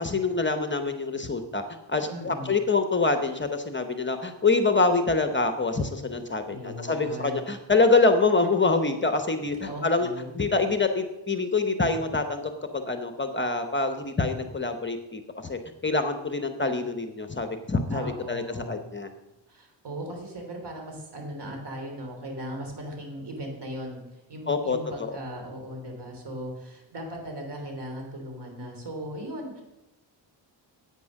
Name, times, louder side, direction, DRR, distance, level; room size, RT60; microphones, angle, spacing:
voice 1, 0.0-1.6 1.9-10.1 10.3-19.1 24.5-25.1, left 3 dB, 25° left, 7 dB, 0.9 m, -25 dB
voice 2, 2.1-2.6 6.5-7.5 9.4-10.3 17.9-18.8 19.5-24.0 24.3-29.6, equal, 55° right, 2 dB, 3.4 m, -38 dB
9.5 x 8.9 x 6.4 m, 0.97 s
cardioid pair, 100°, 47 cm